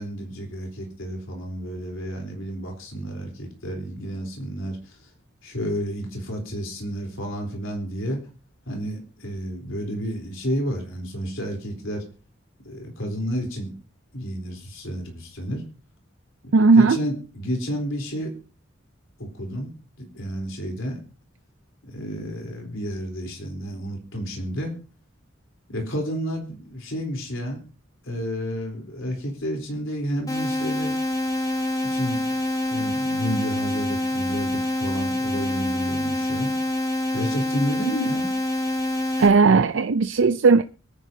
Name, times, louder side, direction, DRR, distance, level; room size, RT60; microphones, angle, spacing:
voice 1, 0.0-5.1 5.4-8.2 8.7-12.0 12.6-13.7 14.1-15.6 16.7-18.3 19.2-19.7 20.0-21.0 21.8-24.8 25.7-27.6 28.0-30.9 31.8-32.4 32.7-36.6 37.1-38.3, equal, 85° left, 3.7 m, -31 dB
voice 2, 16.5-17.0 39.2-40.6, right 4 dB, 70° right, 0.5 m, -16 dB
sound 1, 30.3-39.3, left 1 dB, 20° left, 2.7 m, -26 dB
23.5 x 9.9 x 2.8 m
head